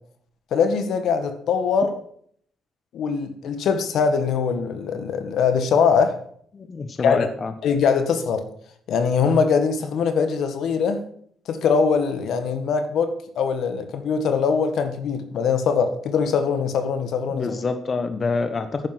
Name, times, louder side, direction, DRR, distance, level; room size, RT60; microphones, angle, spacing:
voice 1, 0.5-1.9 2.9-6.2 7.0-7.3 7.6-8.5 8.9-11.0 11.5-17.5, left 6 dB, 75° left, 1.7 m, -22 dB
voice 2, 6.5-7.5 17.3-18.9, left 4 dB, 40° left, 1.1 m, -26 dB
10.5 x 9.5 x 6.0 m
cardioid pair, 90°, 0 cm